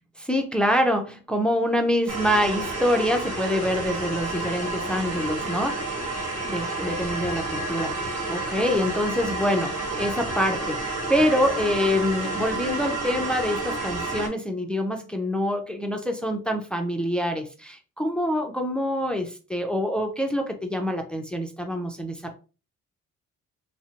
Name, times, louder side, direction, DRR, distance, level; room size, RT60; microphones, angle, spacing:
voice 1, 0.2-5.8 6.4-10.8 11.1-22.4, equal, 5° left, 0.4 m, -26 dB
sound 1, 2.1-14.3, right 2 dB, 55° right, 1.3 m, -30 dB
2.6 x 2.1 x 2.7 m
cardioid pair, 90°, 30 cm